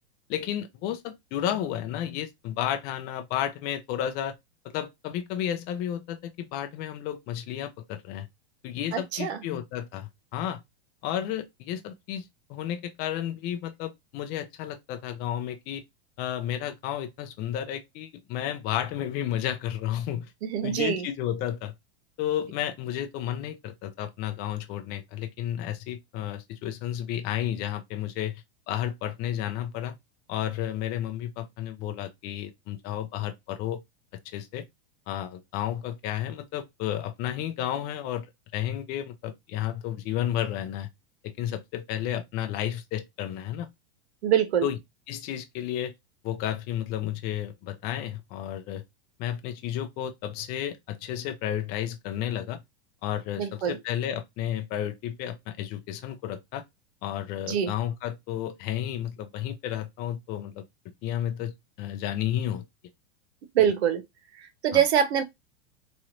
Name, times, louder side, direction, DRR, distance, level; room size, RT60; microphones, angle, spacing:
voice 1, 0.3-4.3 4.6-8.3 8.6-10.6 11.0-12.2 12.5-15.8 16.2-20.3 20.6-21.7 22.2-29.9 30.3-33.8 34.3-34.7 35.1-38.3 38.5-40.9 41.2-43.7 44.6-44.8 45.1-45.9 46.2-48.8 49.2-52.6 53.0-56.6 57.0-60.6 61.0-62.6 64.7-64.8, left 11 dB, 30° left, 0.4 m, -32 dB
voice 2, 8.9-9.4 20.4-21.1 44.2-44.6 53.4-53.8 57.5-57.7 63.5-64.0 64.4-65.2, right 9 dB, 85° right, 0.8 m, -24 dB
3.1 x 2.5 x 2.9 m
supercardioid pair, 140°, 32 cm